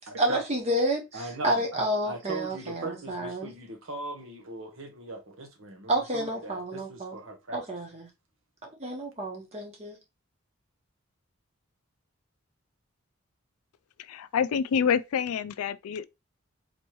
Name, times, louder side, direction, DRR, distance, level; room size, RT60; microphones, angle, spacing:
voice 1, 0.2-3.5 5.9-7.2 7.5-8.1 8.8-10.0, right 1 dB, 30° right, 1.1 m, -30 dB
voice 2, 1.1-7.6, right 2 dB, 70° right, 1.0 m, -39 dB
voice 3, 14.0-16.1, left 7 dB, 85° left, 0.3 m, -27 dB
4.2 x 3.1 x 3.0 m
head